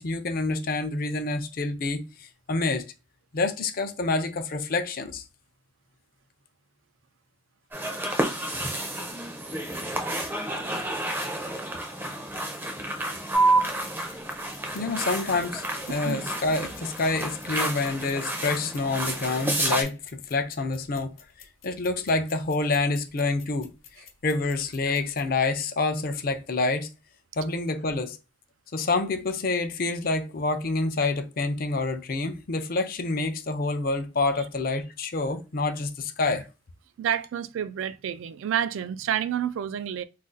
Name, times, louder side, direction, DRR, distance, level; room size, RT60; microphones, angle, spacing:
voice 1, 0.0-2.9 3.3-5.2 14.7-21.1 21.6-23.7 24.0-26.9 27.4-28.2 28.7-36.4, left 3 dB, 45° left, 0.5 m, -27 dB
sound 1, 7.7-19.8, right 1 dB, 10° right, 0.5 m, -32 dB
sound 2, 13.3-25.3, right 3 dB, 85° left, 0.8 m, -32 dB
voice 2, 15.9-16.3 37.0-40.0, right 9 dB, 75° right, 0.3 m, -29 dB
2.4 x 2.4 x 3.8 m
head